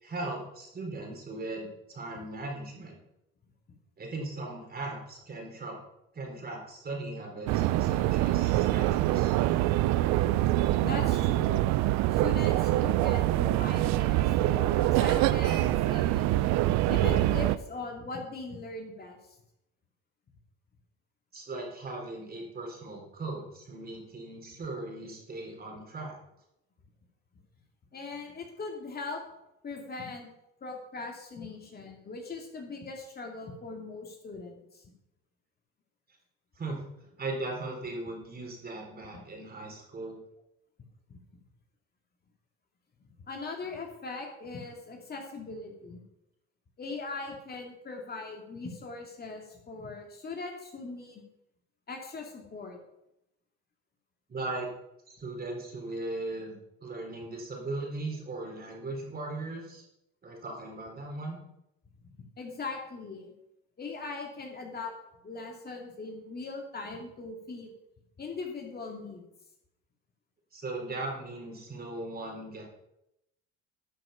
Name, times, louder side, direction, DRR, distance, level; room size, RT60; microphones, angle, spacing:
voice 1, 0.0-3.0 4.0-5.8 6.1-9.4 21.3-26.2 36.6-36.8 37.1-40.2 54.3-54.7 55.1-59.8 60.2-61.4 70.5-72.6, right 2 dB, 30° right, 1 dB, 3.9 m, -38 dB
sound 1, 7.5-17.6, right 15 dB, 70° right, 0.6 m, -25 dB
voice 2, 10.8-11.7 12.1-16.4 16.9-19.2 27.9-29.2 29.6-30.3 30.6-34.9 39.1-39.2 41.1-41.2 43.3-46.0 46.8-51.2 51.9-52.8 62.0-62.1 62.4-63.3 63.8-64.9 65.2-67.7 68.2-69.2, left 3 dB, 30° left, 1 dB, 2.5 m, -40 dB
12.0 x 6.5 x 5.8 m, 0.85 s
supercardioid pair, 90°, 30 cm